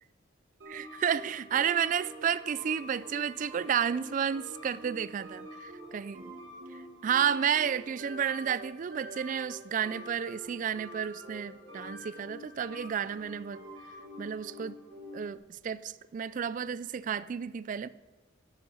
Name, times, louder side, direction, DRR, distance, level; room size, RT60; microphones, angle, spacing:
sound 1, 0.6-15.4, equal, 65° right, 2.3 m, -47 dB
voice 1, 0.7-6.2 7.0-13.6 14.2-14.8 15.1-17.9, right 8 dB, 45° right, 0.3 m, -31 dB
10.0 x 7.3 x 7.1 m
head